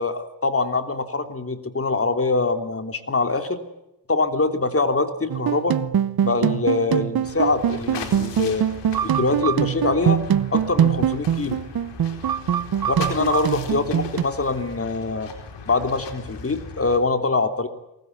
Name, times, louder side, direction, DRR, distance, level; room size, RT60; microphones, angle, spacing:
voice 1, 0.0-3.6 4.1-5.8 6.2-8.6 9.0-10.2 10.5-11.6 12.9-15.3 15.7-17.7, left 3 dB, 35° left, 8 dB, 3.3 m, -24 dB
sound 1, 5.3-14.2, right 9 dB, 60° right, 1.0 m, -23 dB
sound 2, 7.2-17.0, left 6 dB, 80° left, 4.5 m, -38 dB
24.0 x 20.0 x 9.4 m, 0.88 s
cardioid pair, 70°, 42 cm